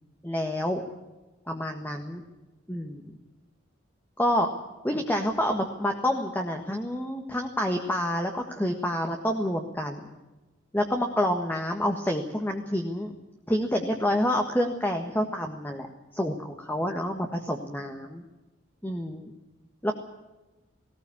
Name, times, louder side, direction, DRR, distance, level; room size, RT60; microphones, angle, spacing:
voice 1, 0.2-0.9 1.5-2.2 2.7-3.0 4.2-10.1 10.7-13.2 13.5-18.2 18.8-19.3 19.8-20.0, equal, 10° left, 3 dB, 1.5 m, -28 dB
19.5 x 18.5 x 8.5 m, 1.1 s
head